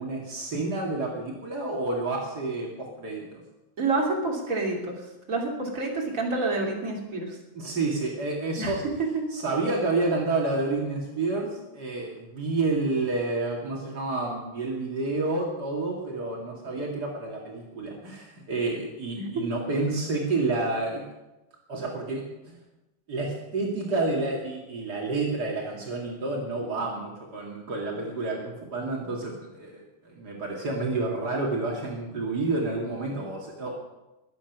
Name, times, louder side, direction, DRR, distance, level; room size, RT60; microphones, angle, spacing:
voice 1, 0.0-3.4 7.5-8.8 9.3-21.0 21.7-22.6 23.1-33.7, right 3 dB, 65° right, -2 dB, 1.0 m, -29 dB
voice 2, 3.8-5.0 5.3-7.4 8.6-8.7 19.1-19.4, right 3 dB, 25° right, -1 dB, 1.9 m, -28 dB
22.0 x 8.7 x 6.1 m, 1.0 s
omnidirectional pair, 5.7 m